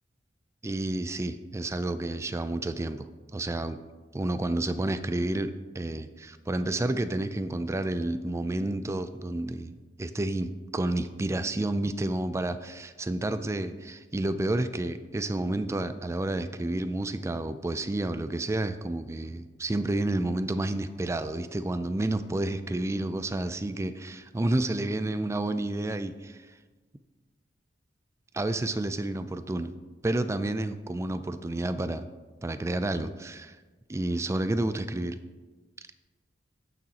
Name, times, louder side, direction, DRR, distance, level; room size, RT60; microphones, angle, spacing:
voice 1, 0.6-3.8 4.1-26.4 28.3-29.7 30.0-32.0 32.4-33.6 33.9-35.2, right 2 dB, 15° right, 11 dB, 0.3 m, -30 dB
13.5 x 6.1 x 2.9 m, 1.3 s
head